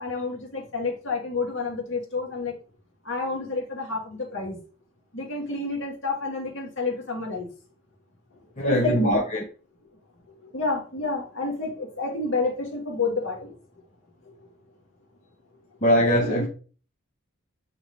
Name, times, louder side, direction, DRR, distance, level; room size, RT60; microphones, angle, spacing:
voice 1, 0.0-2.5 3.0-4.6 5.1-7.5 8.6-9.2 10.4-13.6 16.2-16.5, left 3 dB, 60° left, 2.9 m, -29 dB
voice 2, 8.6-9.4 15.8-16.5, equal, 35° left, 1.1 m, -21 dB
9.6 x 3.9 x 3.6 m
head